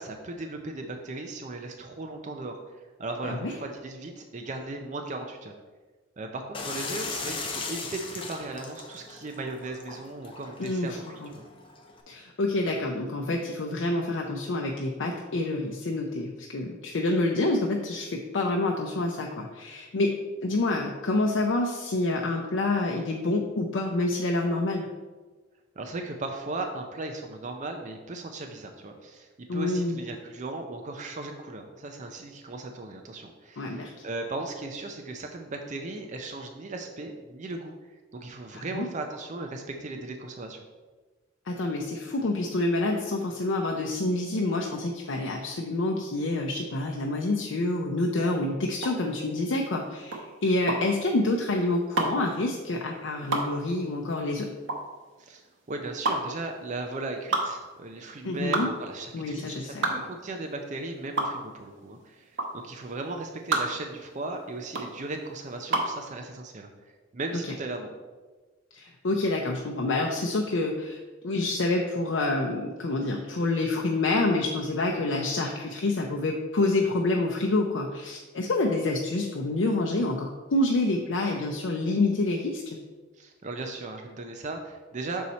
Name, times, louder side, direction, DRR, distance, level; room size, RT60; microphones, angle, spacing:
voice 1, 0.0-5.5 6.2-11.5 25.8-37.7 38.1-40.6 55.2-67.9 83.2-85.3, right 2 dB, 40° right, 4 dB, 0.5 m, -37 dB
sound 1, 6.5-12.0, left 4 dB, 25° left, 0.7 m, -38 dB
voice 2, 10.6-11.3 12.1-24.9 29.5-30.0 33.6-33.9 38.5-38.9 41.5-54.5 58.2-58.7 59.1-59.9 68.7-82.8, left 2 dB, 80° left, 1 dB, 0.5 m, -27 dB
sound 2, 48.8-66.0, right 2 dB, 85° right, 1.0 m, -31 dB
6.4 x 4.2 x 4.1 m, 1.3 s
head